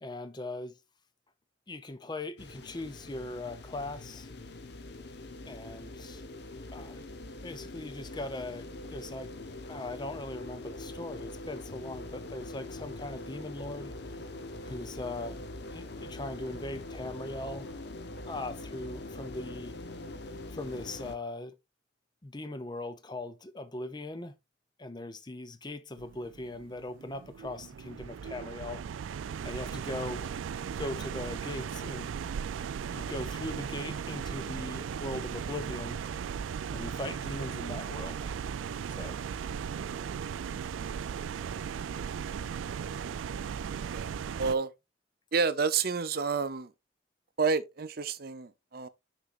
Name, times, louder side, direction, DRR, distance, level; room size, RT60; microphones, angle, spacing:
voice 1, 0.0-0.8 1.7-4.3 5.5-6.2 6.7-7.1 7.4-9.3 9.7-14.2 14.6-15.5 15.7-17.7 18.3-19.8 20.5-21.5 22.2-24.4 24.8-28.8 29.4-30.4 30.8-32.1 32.9-36.0 36.7-38.5 39.0-39.2 41.5-41.6, left 2 dB, 20° left, 0.7 m, -40 dB
sound 1, 2.4-21.2, left 2 dB, 60° left, 0.8 m, -43 dB
sound 2, 26.0-44.5, right 7 dB, 85° right, 0.3 m, -37 dB
voice 2, 44.4-44.7 45.3-46.7 47.4-48.9, right 5 dB, 55° right, 0.7 m, -29 dB
6.7 x 6.1 x 2.5 m
head